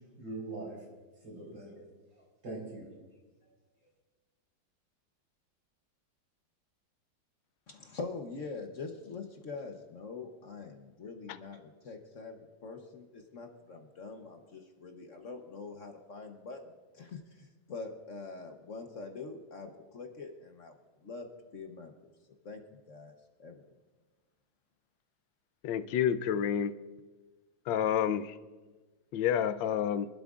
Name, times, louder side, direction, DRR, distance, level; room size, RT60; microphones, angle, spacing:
voice 1, 0.2-0.8 1.2-1.8 2.1-2.9 3.4-3.5, right 2 dB, 80° right, -3 dB, 5.0 m, -42 dB
voice 2, 7.7-20.7 21.0-21.3 21.5-22.1 22.4-23.1 23.4-23.6, left 4 dB, 50° left, 4 dB, 1.1 m, -44 dB
voice 3, 25.6-26.7 27.7-28.4 29.1-30.1, left 9 dB, 80° left, 14 dB, 1.3 m, -29 dB
26.0 x 12.0 x 2.4 m, 1.3 s
omnidirectional pair, 2.0 m